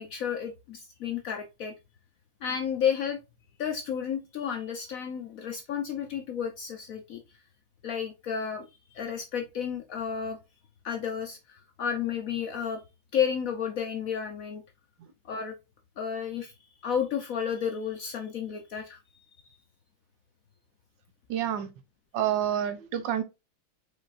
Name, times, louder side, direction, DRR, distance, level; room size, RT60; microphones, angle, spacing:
voice 1, 0.0-1.7 2.4-3.2 3.6-7.2 7.8-8.7 8.9-10.4 10.8-12.8 13.1-14.6 15.2-15.5 16.0-16.5 16.8-19.0 19.3-19.4, left 7 dB, 70° left, 0.8 m, -32 dB
voice 2, 21.3-21.7 22.1-23.2, right 10 dB, 70° right, 1.3 m, -28 dB
5.0 x 4.0 x 2.5 m
omnidirectional pair, 2.2 m